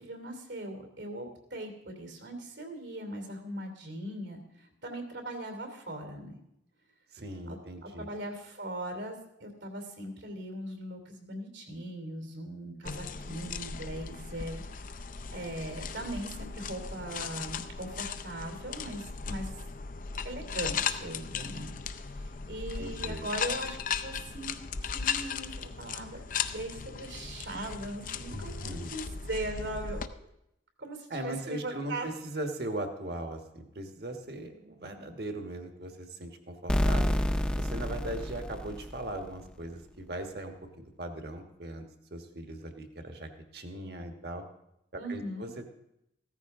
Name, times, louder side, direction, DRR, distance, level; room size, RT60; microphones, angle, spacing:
voice 1, 0.0-6.3 7.5-7.6 7.8-14.6 15.3-19.5 20.2-21.8 22.1-24.6 24.8-26.2 26.5-30.3 30.8-32.1 45.0-45.5, right 1 dB, 80° right, 4 dB, 2.8 m, -39 dB
voice 2, 7.1-8.1 22.8-23.3 28.3-28.9 31.1-37.1 37.6-41.8 42.1-44.5 44.9-45.6, right 1 dB, 55° right, 5 dB, 1.3 m, -39 dB
sound 1, 12.8-30.1, left 6 dB, 45° left, 0.5 m, -37 dB
sound 2, 36.7-39.4, equal, 5° left, 0.6 m, -29 dB
15.5 x 13.5 x 3.6 m, 0.82 s
head